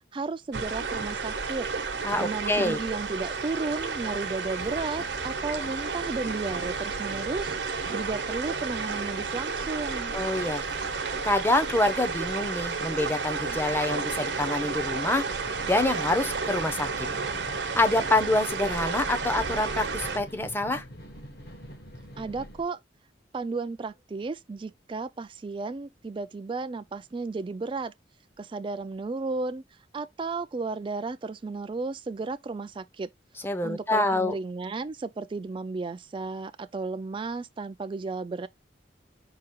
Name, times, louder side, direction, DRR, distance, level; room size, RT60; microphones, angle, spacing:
voice 1, 0.1-1.7 2.2-10.1 22.2-22.8 23.3-27.9 28.4-33.1 33.6-38.5, right 3 dB, 30° right, 0.3 m, -34 dB
sound 1, 0.5-20.2, right 4 dB, 75° right, 0.9 m, -32 dB
voice 2, 2.0-2.8 10.1-10.6 11.2-15.2 15.7-17.1 17.8-20.8 33.4-34.4, left 2 dB, 10° left, 0.6 m, -26 dB
sound 2, 4.6-22.6, equal, 60° left, 1.2 m, -45 dB
4.8 x 2.4 x 4.3 m
head